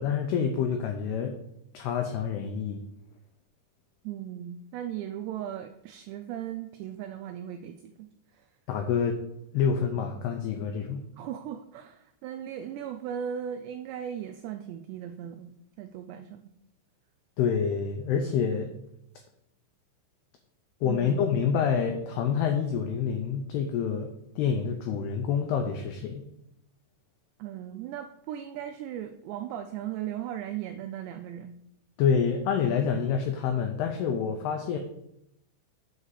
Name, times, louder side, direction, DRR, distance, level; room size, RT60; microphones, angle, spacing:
voice 1, 0.0-1.4 1.7-2.8 8.7-9.2 9.5-11.1 17.4-18.7 20.8-26.2 32.0-34.8, left 7 dB, 85° left, 5 dB, 2.3 m, -27 dB
voice 2, 4.0-8.5 11.2-15.5 15.8-16.5 20.8-21.2 27.4-31.6, right 10 dB, 85° right, 7 dB, 2.4 m, -37 dB
7.8 x 4.8 x 6.5 m, 0.79 s
omnidirectional pair, 5.5 m